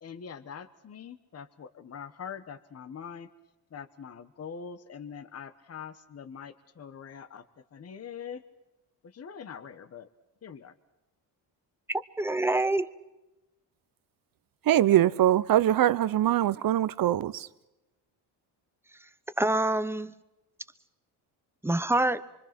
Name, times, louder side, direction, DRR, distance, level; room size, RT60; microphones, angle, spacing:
voice 1, 0.0-3.3 3.7-7.4 7.7-8.4 9.0-10.1 10.4-10.7, left 7 dB, 35° left, 1.2 m, -43 dB
voice 2, 11.9-12.9 19.4-20.1 21.6-22.3, right 2 dB, 5° right, 0.8 m, -26 dB
voice 3, 14.6-17.5, right 12 dB, 55° right, 0.9 m, -23 dB
25.5 x 24.5 x 6.0 m
cardioid pair, 110°, 42 cm